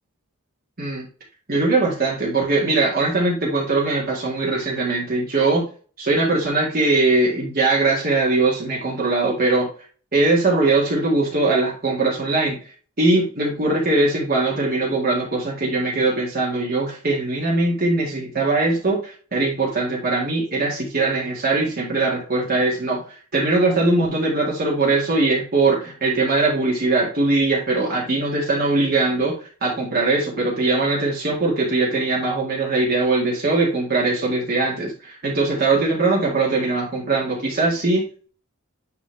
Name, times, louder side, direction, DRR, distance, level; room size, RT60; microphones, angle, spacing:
voice 1, 1.5-5.7 6.0-9.7 10.1-12.6 13.0-29.4 29.6-38.3, right 3 dB, 45° right, -4 dB, 2.0 m, -21 dB
10.0 x 3.6 x 3.4 m, 0.39 s
head